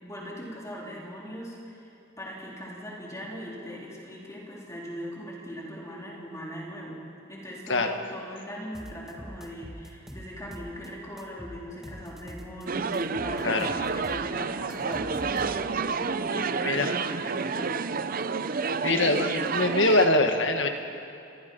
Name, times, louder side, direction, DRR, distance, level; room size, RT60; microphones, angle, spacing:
voice 1, 0.0-7.0 7.3-18.0, equal, 15° left, -4 dB, 3.6 m, -40 dB
sound 1, 8.7-10.9 11.2-12.6 12.9-15.9, equal, ahead, 1.6 m, -44 dB
sound 2, 12.7-20.1, right 5 dB, 45° right, 0.6 m, -29 dB
voice 2, 18.8-20.7, left 2 dB, 65° left, 5 dB, 1.8 m, -23 dB
28.5 x 21.5 x 5.6 m, 2.8 s
head